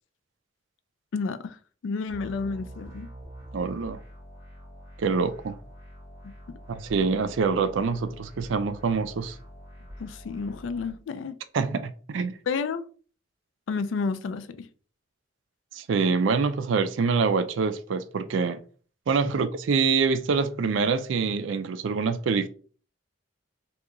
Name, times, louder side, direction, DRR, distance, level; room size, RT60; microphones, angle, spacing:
voice 1, 1.1-1.6 1.8-3.1 6.2-6.6 10.0-11.3 12.5-12.9 13.7-14.7 19.3-19.4, left 4 dB, 75° left, 0.3 m, -31 dB
sound 1, 2.1-10.9, equal, 15° right, 1.6 m, -45 dB
voice 2, 3.5-4.0 5.0-5.6 6.7-9.4 11.5-12.3 15.7-18.6 19.1-22.5, right 5 dB, 75° right, 0.4 m, -25 dB
2.8 x 2.3 x 3.7 m
head